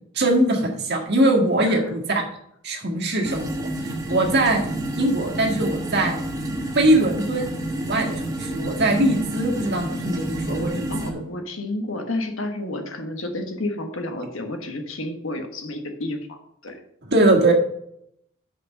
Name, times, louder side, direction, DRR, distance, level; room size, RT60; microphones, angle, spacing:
voice 1, 0.1-2.2 2.6-4.7 5.0-6.2 6.7-11.2 17.0-17.5, right 1 dB, 55° right, 0 dB, 1.8 m, -22 dB
sound 1, 3.2-11.1, right 1 dB, 20° right, 1.2 m, -29 dB
voice 2, 10.9-16.8, left 1 dB, 70° left, 4 dB, 1.3 m, -31 dB
6.1 x 5.5 x 6.3 m, 0.72 s
head